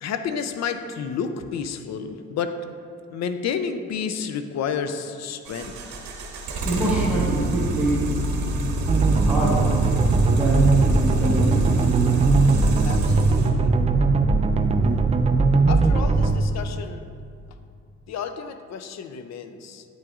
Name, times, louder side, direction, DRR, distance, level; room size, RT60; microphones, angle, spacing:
voice 1, 0.0-2.6 3.1-5.7 12.8-13.7 14.2-14.3 15.7-17.1 18.1-19.9, left 6 dB, 60° left, 9 dB, 0.5 m, -31 dB
sound 1, 5.5-13.5, right 1 dB, 70° right, 1.0 m, -27 dB
voice 2, 6.6-8.2 8.5-9.7 10.2-12.3, right 1 dB, 5° right, -7 dB, 1.4 m, -26 dB
sound 2, 8.9-16.4, right 4 dB, 20° right, 0.3 m, -20 dB
9.0 x 6.1 x 2.4 m, 2.3 s
cardioid pair, 90°, 30 cm